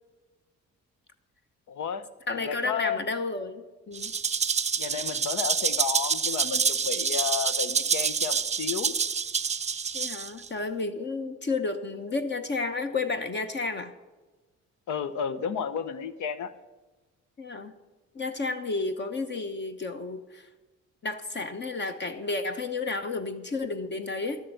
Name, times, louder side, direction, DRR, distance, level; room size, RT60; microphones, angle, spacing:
voice 1, 1.7-2.1 2.4-3.0 4.8-8.9 14.9-16.5, left 7 dB, 75° left, 13 dB, 0.8 m, -32 dB
voice 2, 2.3-4.1 9.9-13.9 17.4-17.7 18.1-20.5 21.0-24.4, left 3 dB, 35° left, 8 dB, 0.9 m, -31 dB
Rattle (instrument), 3.9-10.5, right 6 dB, 25° right, 0.5 m, -27 dB
12.0 x 6.7 x 7.7 m, 1.2 s
cardioid pair, 90°, 30 cm